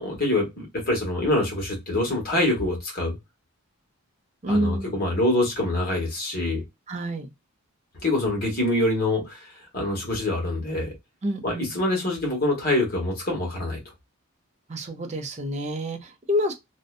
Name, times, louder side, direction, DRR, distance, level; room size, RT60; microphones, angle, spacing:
voice 1, 0.0-3.2 4.5-6.6 8.0-10.9 11.4-13.8, left 1 dB, 40° left, 1.2 m, -25 dB
voice 2, 4.4-4.9 6.9-7.3 11.2-11.7 14.7-16.5, equal, 30° right, 0.5 m, -28 dB
2.6 x 2.1 x 2.3 m
head